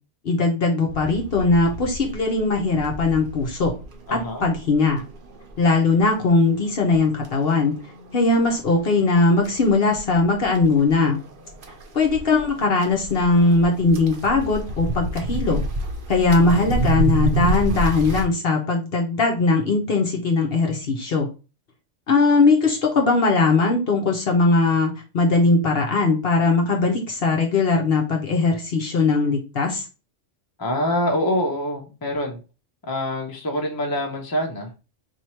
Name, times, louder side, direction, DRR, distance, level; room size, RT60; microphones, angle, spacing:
voice 1, 0.2-3.7 4.1-5.0 5.6-7.8 8.1-11.2 11.9-15.6 16.1-21.3 22.1-29.9, left 3 dB, 60° left, 1 dB, 0.9 m, -20 dB
sound 1, 0.9-18.2, right 2 dB, 50° right, 0.9 m, -30 dB
voice 2, 4.1-4.5 16.4-16.7 30.6-32.4 32.8-34.7, left 1 dB, 20° left, 1 dB, 0.8 m, -25 dB
3.0 x 2.8 x 4.3 m, 0.32 s
omnidirectional pair, 1.2 m